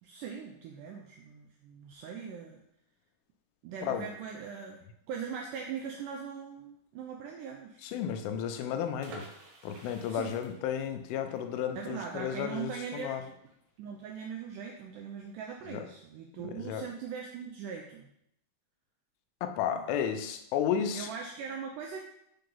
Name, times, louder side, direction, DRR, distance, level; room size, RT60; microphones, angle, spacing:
voice 1, 0.0-2.6 3.6-4.8 5.1-7.8 10.1-10.3 11.7-13.2 13.8-18.1 19.7-20.1 20.9-22.0, right 6 dB, 85° right, 1 dB, 1.8 m, -40 dB
voice 2, 7.8-9.3 9.6-13.2 15.7-15.8 16.4-16.8 19.4-21.1, left 9 dB, 80° left, 6 dB, 2.3 m, -33 dB
sound 1, 9.0-14.6 14.9-15.0 15.3-15.6, right 3 dB, 60° right, 2.3 m, -52 dB
5.6 x 3.8 x 5.4 m, 0.76 s
omnidirectional pair, 4.3 m